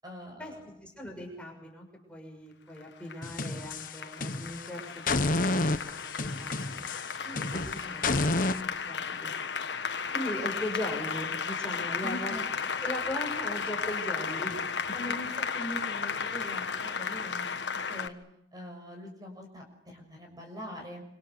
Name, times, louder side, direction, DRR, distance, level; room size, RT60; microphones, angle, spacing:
voice 1, 0.0-0.8 7.2-8.4 8.8-9.3 12.0-12.5 14.9-18.1 18.5-21.0, equal, 20° right, 2 dB, 6.3 m, -43 dB
voice 2, 0.8-6.9 7.4-8.0 8.5-8.6 8.9-9.3 10.1-12.4 12.8-14.6, equal, 5° left, 0 dB, 6.5 m, -39 dB
Applause, 2.8-18.1, left 6 dB, 85° left, 1.5 m, -34 dB
sound 1, 3.2-4.6 5.1-8.6, left 2 dB, 50° left, 1.2 m, -30 dB
27.0 x 26.0 x 6.9 m, 0.78 s
head